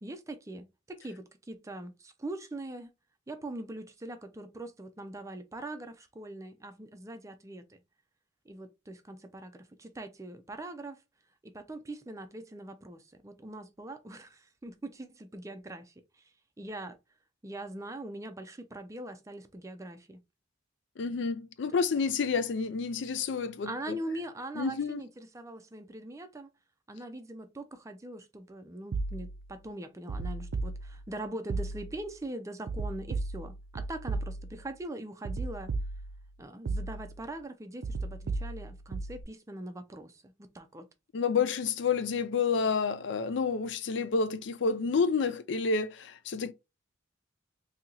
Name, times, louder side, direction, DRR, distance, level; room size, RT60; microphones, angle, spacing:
voice 1, 0.0-2.9 3.3-7.8 8.5-11.0 11.4-15.9 16.6-17.0 17.4-20.2 23.6-26.5 26.9-35.7 36.4-40.9, right 1 dB, 15° right, 0.4 m, -42 dB
voice 2, 21.0-24.0 24.6-25.0 41.1-46.5, left 5 dB, 65° left, 0.4 m, -29 dB
sound 1, 28.9-29.5 30.1-31.2 31.5-32.1 32.7-34.7 35.2-36.3 36.7-37.3 37.8-39.2, right 3 dB, 85° right, 0.5 m, -35 dB
2.8 x 2.8 x 3.7 m
head